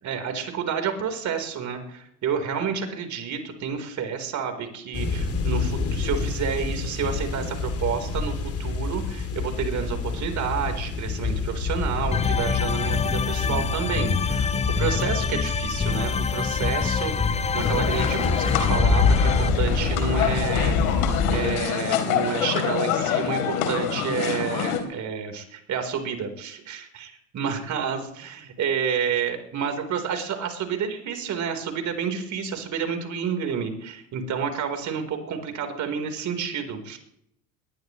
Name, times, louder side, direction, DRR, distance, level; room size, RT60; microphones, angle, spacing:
voice 1, 0.0-8.3 8.6-20.7 21.3-37.0, right 7 dB, 40° right, 6 dB, 4.2 m, -30 dB
sound 1, 4.9-21.6, left 4 dB, 30° left, 3.0 m, -27 dB
sound 2, 12.1-19.5, left 6 dB, 15° left, 0.7 m, -26 dB
sound 3, 17.6-24.8, left 8 dB, 70° left, 3.8 m, -26 dB
21.0 x 20.0 x 3.2 m, 0.76 s
hypercardioid pair, 80°, 45 cm